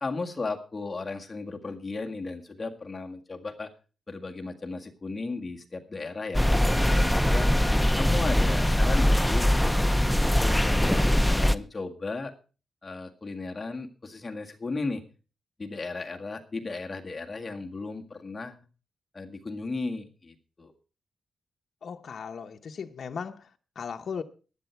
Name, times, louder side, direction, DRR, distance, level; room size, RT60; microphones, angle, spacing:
voice 1, 0.0-3.7 4.1-7.5 8.0-9.5 10.0-12.3 12.8-15.0 15.6-18.6 19.1-20.7, left 3 dB, 25° left, 1.8 m, -35 dB
sound 1, 6.3-11.6, left 1 dB, 5° left, 0.6 m, -22 dB
voice 2, 21.8-23.5 23.8-24.2, left 6 dB, 60° left, 0.9 m, -37 dB
15.0 x 10.5 x 4.5 m
wide cardioid pair, 130°, 0 cm